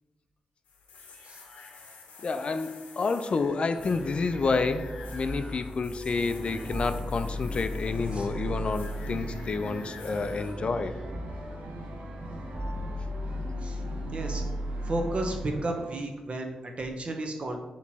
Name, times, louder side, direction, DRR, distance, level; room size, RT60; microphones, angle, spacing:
sound 1, 0.7-10.5, left 4 dB, 85° left, 0.7 m, -49 dB
voice 1, 2.2-11.0, left 4 dB, 50° left, 10 dB, 0.3 m, -29 dB
sound 2, 3.8-15.5, equal, 35° right, 1.5 m, -37 dB
sound 3, 6.1-16.0, right 2 dB, 90° right, 0.7 m, -43 dB
voice 2, 14.1-14.4 14.8-17.6, right 2 dB, 50° right, 2 dB, 0.8 m, -33 dB
4.3 x 3.0 x 4.1 m, 1.1 s
cardioid pair, 65°, 2 cm